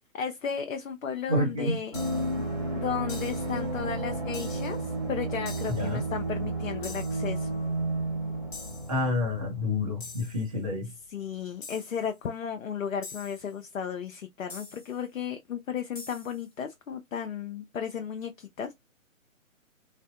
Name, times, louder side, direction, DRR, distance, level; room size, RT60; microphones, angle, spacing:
voice 1, 0.1-1.9 2.7-7.5 11.1-18.7, left 7 dB, 65° left, 0.5 m, -34 dB
voice 2, 1.3-1.8 5.7-6.0 8.9-10.9, left 2 dB, 25° right, 0.7 m, -28 dB
sound 1, 1.9-2.4 3.1-3.6 4.3-4.8 5.5-6.0 6.8-7.4 8.5-9.0 10.0-10.5 11.6-12.1 13.0-13.5 14.5-15.0 15.9-16.5, left 4 dB, 35° left, 1.0 m, -45 dB
sound 2, 1.9-10.4 10.7-10.8, right 2 dB, ahead, 1.0 m, -32 dB
3.3 x 2.0 x 2.3 m
figure-of-eight pair, 135°, 42 cm